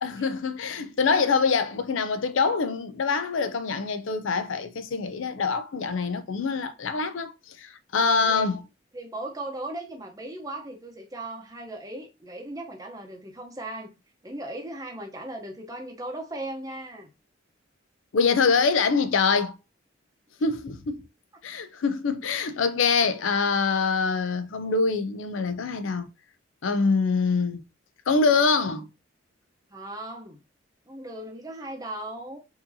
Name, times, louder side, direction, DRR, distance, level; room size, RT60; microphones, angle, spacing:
voice 1, 0.0-8.6 18.1-19.6 20.4-21.0 21.4-26.1 26.6-27.6 28.1-28.9, left 4 dB, 80° left, 0.5 m, -25 dB
voice 2, 8.0-8.5 8.9-13.9 14.2-17.1 29.7-30.4 30.9-32.4, right 1 dB, 20° right, 0.8 m, -37 dB
4.8 x 2.7 x 2.7 m
head